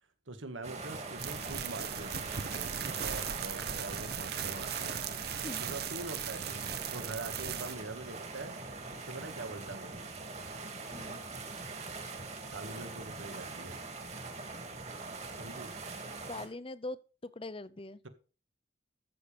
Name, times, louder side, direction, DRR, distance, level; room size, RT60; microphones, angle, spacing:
voice 1, 0.3-2.7 3.0-6.5 6.9-8.6 9.1-10.0 12.5-13.8 15.4-15.7, right 2 dB, 85° right, 1.8 m, -44 dB
sound 1, 0.6-16.5, right 3 dB, 35° right, 2.3 m, -42 dB
sound 2, 1.2-7.7, right 9 dB, 55° right, 0.9 m, -38 dB
voice 2, 5.2-5.6 10.9-11.2 16.2-18.0, left 2 dB, 30° left, 0.6 m, -42 dB
14.0 x 7.0 x 5.1 m
head